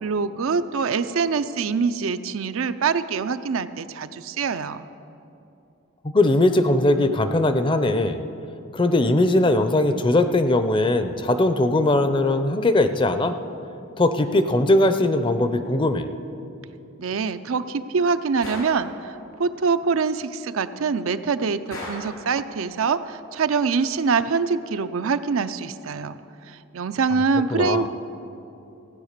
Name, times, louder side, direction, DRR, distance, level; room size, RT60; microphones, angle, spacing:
voice 1, 0.0-4.9 17.0-26.2 26.5-27.9, right 5 dB, 75° right, 11 dB, 0.5 m, -24 dB
voice 2, 6.0-8.2 8.7-13.3 14.0-16.1 27.5-27.9, left 2 dB, 25° left, 10 dB, 0.5 m, -20 dB
Gunshot gunfire, 18.4-18.8 21.7-22.2, left 1 dB, 80° left, 4.0 m, -34 dB
15.5 x 9.1 x 6.6 m, 2.7 s
head